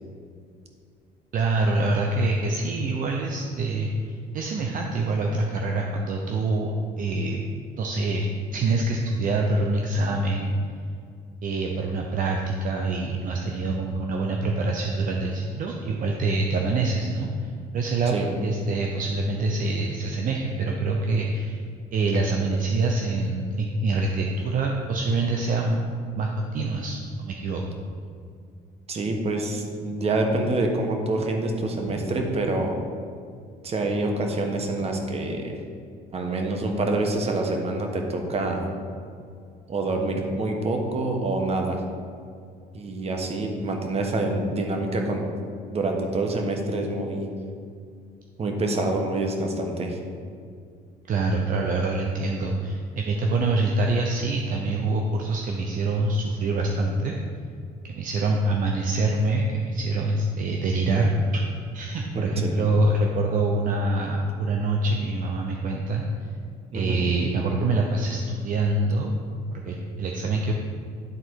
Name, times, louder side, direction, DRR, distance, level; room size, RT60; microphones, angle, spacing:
voice 1, 1.3-7.4 7.8-10.5 11.4-18.1 18.4-21.6 21.9-25.8 26.2-27.6 51.1-57.2 57.9-61.5 61.7-66.3 66.7-69.1 69.5-70.5, right 2 dB, 50° right, 1 dB, 0.7 m, -25 dB
voice 2, 28.9-32.8 33.6-35.6 36.1-38.6 39.7-41.8 42.7-45.2 45.7-47.3 48.4-50.0 62.1-62.5 66.7-67.0, right 2 dB, 35° right, 2 dB, 1.2 m, -26 dB
11.0 x 3.9 x 4.6 m, 2.3 s
cardioid pair, 110°, 17 cm